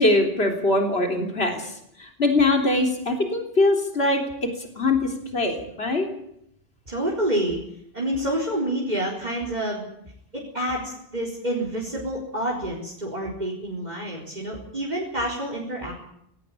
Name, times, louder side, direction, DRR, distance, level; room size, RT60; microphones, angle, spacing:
voice 1, 0.0-1.7 2.0-4.5 4.8-6.1, left 2 dB, 85° left, 4 dB, 3.8 m, -22 dB
voice 2, 6.9-7.6 7.9-9.9 10.3-15.9, right 1 dB, 45° right, -1 dB, 4.5 m, -28 dB
18.5 x 17.5 x 9.9 m, 0.74 s
omnidirectional pair, 1.0 m